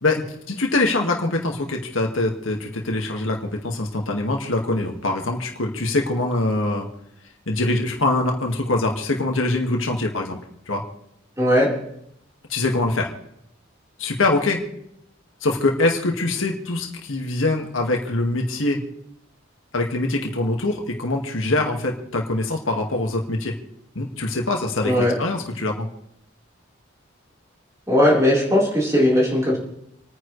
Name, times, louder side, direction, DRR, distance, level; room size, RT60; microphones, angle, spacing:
voice 1, 0.0-6.9 7.5-10.4 10.7-10.8 12.5-13.1 14.0-14.6 15.4-18.8 19.7-23.5 24.0-25.9, left 2 dB, 80° left, 1 dB, 2.0 m, -23 dB
voice 2, 11.4-11.7 24.8-25.1 27.9-29.6, left 1 dB, 15° right, -5 dB, 4.2 m, -18 dB
28.5 x 9.7 x 3.3 m, 0.76 s
head